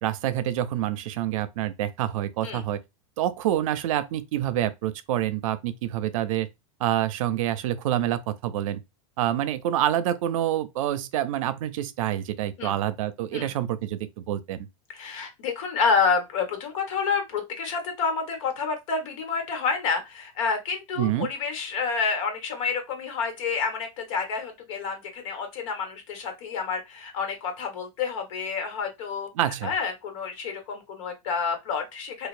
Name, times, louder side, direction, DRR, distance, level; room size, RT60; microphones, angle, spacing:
voice 1, 0.0-2.8 3.2-6.5 6.8-8.8 9.2-14.7 21.0-21.3 29.4-29.7, right 12 dB, 75° right, 0.5 m, -27 dB
voice 2, 14.9-29.3 29.6-32.3, left 5 dB, 70° left, 1.3 m, -29 dB
4.0 x 2.4 x 2.4 m
supercardioid pair, 140°, 17 cm